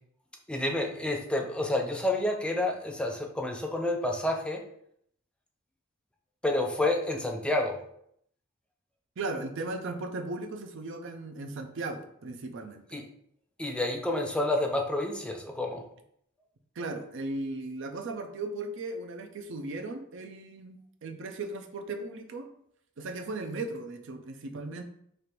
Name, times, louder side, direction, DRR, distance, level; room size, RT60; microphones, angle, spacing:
voice 1, 0.5-4.6 6.4-7.8 12.9-13.0 13.6-15.8, left 1 dB, 5° left, 2 dB, 0.4 m, -29 dB
voice 2, 9.2-13.0 16.8-22.5 23.0-24.8, right 2 dB, 60° right, 6 dB, 0.5 m, -37 dB
3.3 x 2.5 x 4.4 m, 0.70 s
head